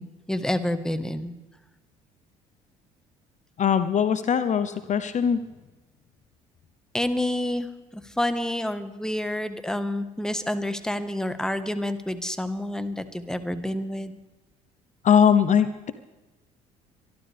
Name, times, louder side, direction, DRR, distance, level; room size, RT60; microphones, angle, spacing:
voice 1, 0.0-1.3 6.9-7.7 7.9-14.2, left 1 dB, 5° left, 10 dB, 1.4 m, -28 dB
voice 2, 3.6-5.4 15.0-15.9, left 8 dB, 45° left, 12 dB, 0.8 m, -21 dB
24.5 x 12.0 x 3.5 m, 1.1 s
hypercardioid pair, 60°, 17 cm